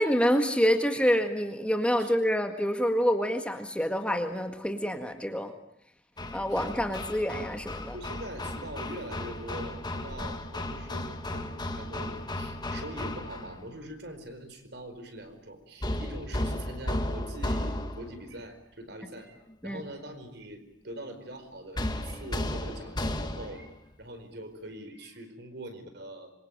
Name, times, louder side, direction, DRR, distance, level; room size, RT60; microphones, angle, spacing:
voice 1, 0.0-5.5 6.3-8.0 19.6-19.8, equal, 5° left, 5 dB, 1.8 m, -27 dB
Hammer, 6.2-13.6 15.8-18.2 21.8-23.7, left 1 dB, 20° left, 1.8 m, -34 dB
voice 2, 7.9-26.3, right 1 dB, 55° right, 8 dB, 4.7 m, -43 dB
26.5 x 24.0 x 8.9 m, 0.72 s
head